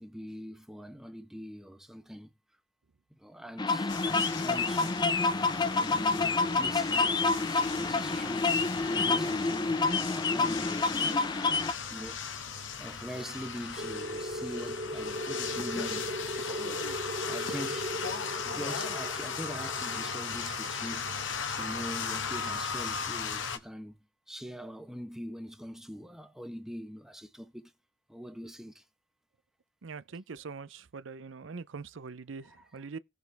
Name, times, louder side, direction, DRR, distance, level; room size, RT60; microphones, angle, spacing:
voice 1, 0.0-2.3 3.2-5.1 5.8-8.5 8.9-12.2 12.8-17.9 18.4-21.1 21.5-23.9 24.3-27.7 28.1-28.8 32.4-32.8, equal, 5° right, 1.1 m, -43 dB
sound 1, 3.6-11.7, left 3 dB, 25° left, 0.6 m, -28 dB
sound 2, 3.9-23.6, left 6 dB, 75° left, 1.5 m, -37 dB
sound 3, 13.8-22.1, equal, 40° right, 2.1 m, -39 dB
voice 2, 29.8-33.0, right 4 dB, 80° right, 0.6 m, -43 dB
18.0 x 6.8 x 3.4 m
head